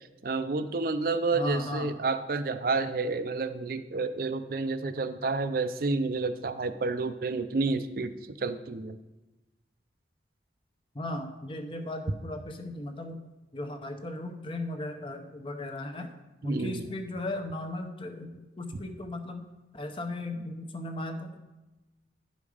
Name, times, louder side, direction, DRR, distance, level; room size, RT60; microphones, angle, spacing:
voice 1, 0.2-8.1 8.4-9.0 16.4-16.9, right 3 dB, 50° right, 11 dB, 0.5 m, -30 dB
voice 2, 1.3-1.9 10.9-13.2 13.5-16.1 16.4-19.5 19.7-21.4, left 1 dB, 30° left, 5 dB, 0.7 m, -36 dB
10.5 x 5.3 x 4.9 m, 1.1 s
head